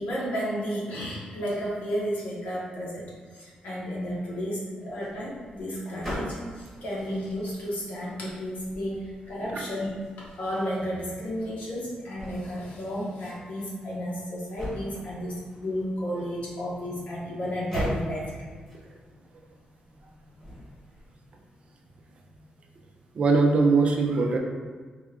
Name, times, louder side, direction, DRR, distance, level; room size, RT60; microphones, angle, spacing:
voice 1, 0.0-3.0 3.3-9.9 10.4-18.5, equal, 65° left, -6 dB, 1.2 m, -32 dB
sound 1, 4.9-21.0, equal, 10° left, 1.5 m, -41 dB
voice 2, 23.1-24.4, right 3 dB, 45° right, 1 dB, 0.4 m, -21 dB
4.0 x 2.4 x 3.6 m, 1.5 s
wide cardioid pair, 165°, 3 cm